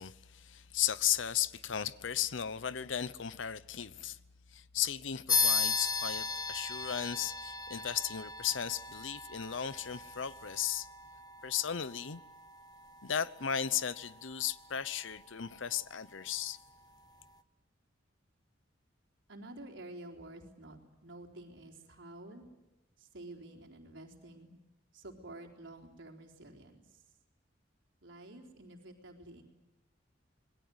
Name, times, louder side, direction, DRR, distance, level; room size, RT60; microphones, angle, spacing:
voice 1, 0.0-4.2 4.5-10.9 11.4-12.2 13.0-16.6, left 9 dB, 90° left, 0.8 m, -35 dB
sound 1, 5.3-15.3, left 4 dB, 20° left, 1.2 m, -37 dB
voice 2, 19.3-22.5 23.0-24.5 24.9-26.8 28.0-29.4, right 1 dB, 80° right, 4.1 m, -50 dB
26.5 x 21.5 x 8.0 m
head